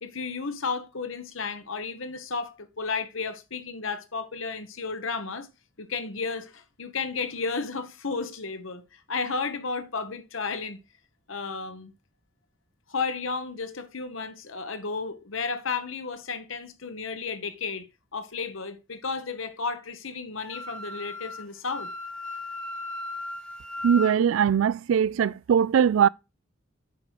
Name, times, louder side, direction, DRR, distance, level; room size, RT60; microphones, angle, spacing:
voice 1, 0.0-5.5 5.8-8.8 9.1-10.8 11.3-11.9 12.9-17.8 18.1-21.9, left 4 dB, 85° left, 1.2 m, -33 dB
Wind instrument woodwind instrument, 20.4-24.2, left 2 dB, 5° left, 0.9 m, -36 dB
voice 2, 23.8-26.1, right 8 dB, 85° right, 0.3 m, -21 dB
8.4 x 5.1 x 4.6 m
head